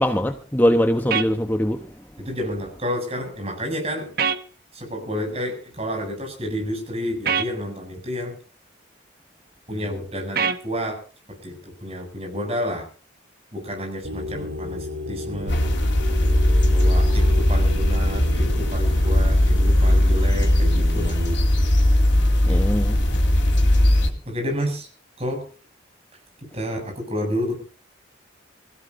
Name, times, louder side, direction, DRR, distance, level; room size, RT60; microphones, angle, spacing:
voice 1, 0.0-1.8 22.5-23.0, equal, 10° left, 1.0 m, -21 dB
sound 1, 1.1-1.3 4.2-4.4 7.3-7.5 10.4-10.6, right 6 dB, 50° right, 1.3 m, -22 dB
voice 2, 2.2-4.2 4.7-8.4 9.7-11.0 11.4-12.9 13.5-15.7 16.7-21.2 22.5-22.6 24.3-24.9 25.2-25.4 26.4-27.6, equal, 30° right, 7.4 m, -30 dB
sound 2, 14.0-21.3, left 1 dB, 80° right, 5.7 m, -33 dB
sound 3, 15.5-24.1, left 1 dB, 75° left, 3.4 m, -18 dB
25.0 x 16.5 x 2.7 m
head